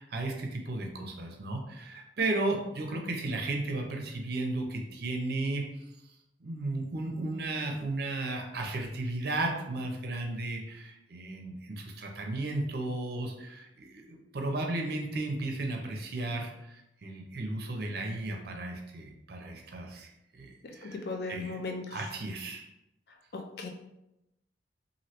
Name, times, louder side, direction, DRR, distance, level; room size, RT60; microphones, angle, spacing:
voice 1, 0.0-5.6 6.4-21.0 21.3-21.6 21.9-22.6, right 2 dB, 60° right, 2 dB, 0.6 m, -34 dB
voice 2, 20.6-22.0 23.3-23.7, left 3 dB, 60° left, 2 dB, 0.5 m, -37 dB
3.1 x 2.6 x 2.9 m, 0.88 s
head